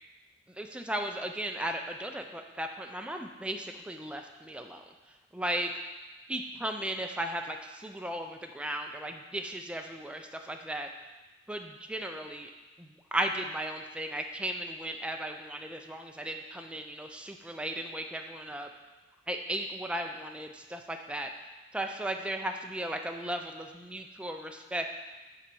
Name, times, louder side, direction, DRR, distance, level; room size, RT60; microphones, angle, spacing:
voice 1, 0.6-4.8 5.3-5.7 6.3-10.9 11.5-12.5 12.8-18.7 19.3-21.3 21.7-24.9, right 1 dB, 5° right, 4 dB, 0.3 m, -36 dB
5.6 x 4.3 x 5.3 m, 1.2 s
head